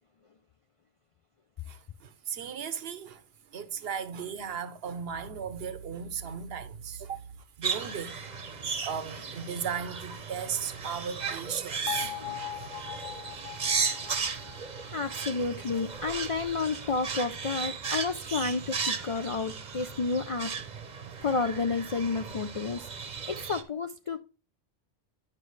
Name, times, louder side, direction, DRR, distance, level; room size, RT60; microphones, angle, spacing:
voice 1, 1.7-3.2 3.5-7.3 7.6-8.2 8.5-12.2, right 7 dB, 75° right, 1.0 m, -36 dB
sound 1, 7.6-23.6, right 5 dB, 45° right, 0.9 m, -35 dB
voice 2, 11.9-12.4 14.9-20.5 21.2-22.9 23.3-24.2, left 4 dB, 55° left, 0.3 m, -31 dB
Bell, 11.9-15.9, left 13 dB, 40° left, 0.7 m, -40 dB
9.7 x 5.9 x 3.1 m
omnidirectional pair, 1.1 m